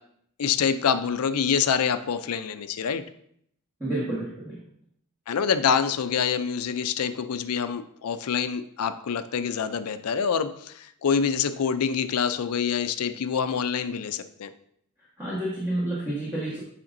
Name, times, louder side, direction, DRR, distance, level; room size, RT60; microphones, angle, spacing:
voice 1, 0.4-3.0 5.3-14.5, left 7 dB, 85° left, 11 dB, 0.5 m, -26 dB
voice 2, 3.8-4.6 15.2-16.6, right 1 dB, 15° right, -8 dB, 1.4 m, -29 dB
8.6 x 5.0 x 2.6 m, 0.69 s
head